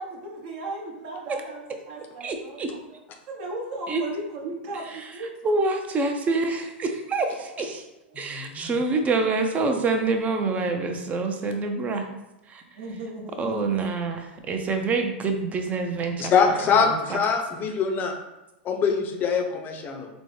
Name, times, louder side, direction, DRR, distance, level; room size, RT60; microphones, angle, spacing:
voice 1, 0.0-2.6 3.3-5.3 8.9-9.2 11.5-11.7 12.8-13.5, right 2 dB, 60° right, 0 dB, 0.9 m, -36 dB
voice 2, 2.2-2.7 3.9-4.0 5.0-5.1 5.4-7.8 8.2-12.1 12.5-12.6 13.4-17.2, right 3 dB, 25° right, 5 dB, 0.5 m, -26 dB
voice 3, 8.1-8.7 16.2-18.1 18.6-20.1, left 5 dB, 30° left, 4 dB, 0.5 m, -24 dB
4.1 x 2.1 x 3.2 m, 0.94 s
hypercardioid pair, 115°, 6 cm